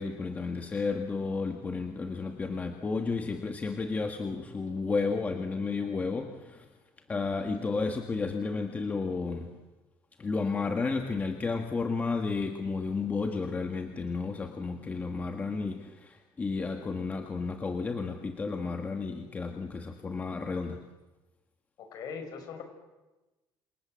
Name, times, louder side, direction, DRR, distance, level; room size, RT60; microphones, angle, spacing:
voice 1, 0.0-6.7 7.1-9.6 10.2-20.8, left 4 dB, 20° left, 4 dB, 1.7 m, -32 dB
voice 2, 21.8-22.6, left 6 dB, 50° left, 6 dB, 5.6 m, -41 dB
28.0 x 27.5 x 7.7 m, 1.1 s
cardioid pair, 175°, 9 cm